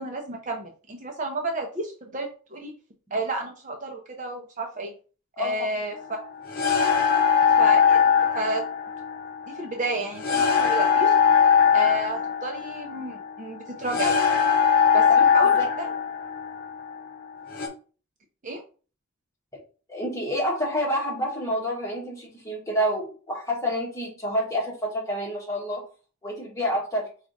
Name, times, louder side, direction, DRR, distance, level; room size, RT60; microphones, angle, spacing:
voice 1, 0.0-2.7 3.1-4.9 5.4-6.2 7.6-8.0 8.3-8.6 9.5-11.1 11.7-14.2 14.9-15.1 15.3-15.9 18.4-18.6, right 2 dB, 35° right, 3 dB, 0.6 m, -31 dB
sound 1, 5.9-17.7, left 7 dB, 45° left, 0.8 m, -21 dB
voice 2, 19.9-25.8 26.2-27.1, equal, 15° left, -2 dB, 1.3 m, -28 dB
4.8 x 2.5 x 3.9 m, 0.37 s
head